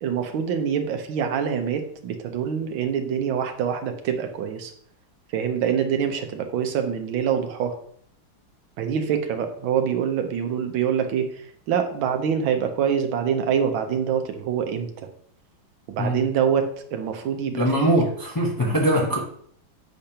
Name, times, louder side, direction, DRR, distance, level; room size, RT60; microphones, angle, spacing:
voice 1, 0.0-4.7 5.3-7.8 8.8-15.1 15.9-18.0, right 8 dB, 85° right, 6 dB, 1.6 m, -25 dB
voice 2, 17.5-19.2, right 1 dB, 30° left, -2 dB, 0.3 m, -22 dB
7.7 x 5.1 x 2.8 m, 0.63 s
omnidirectional pair, 2.1 m